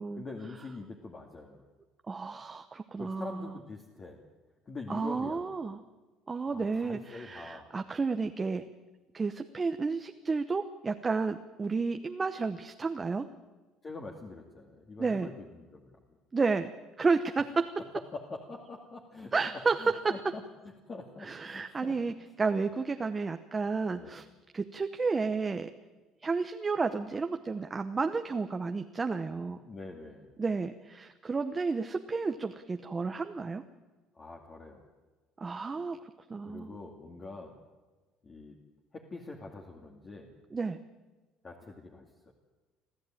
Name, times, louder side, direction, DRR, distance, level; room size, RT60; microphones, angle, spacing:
voice 1, 0.1-1.6 3.0-4.2 4.7-5.4 6.5-7.7 13.8-16.0 18.1-20.4 20.9-22.0 23.9-24.2 29.6-30.3 34.1-34.8 36.5-37.5 38.2-38.6 38.9-40.3 41.4-42.3, left 3 dB, 30° left, 1 dB, 2.4 m, -44 dB
voice 2, 2.1-3.5 4.9-5.8 6.3-8.6 9.1-13.3 15.0-15.3 16.3-16.7 17.0-17.7 19.3-19.7 20.0-20.1 21.2-24.2 24.5-25.7 26.2-29.6 30.4-33.6 35.4-36.0 36.3-36.8 40.5-40.8, right 4 dB, 20° right, 7 dB, 0.9 m, -31 dB
26.0 x 14.5 x 9.1 m, 1.3 s
cardioid pair, 125°, 0 cm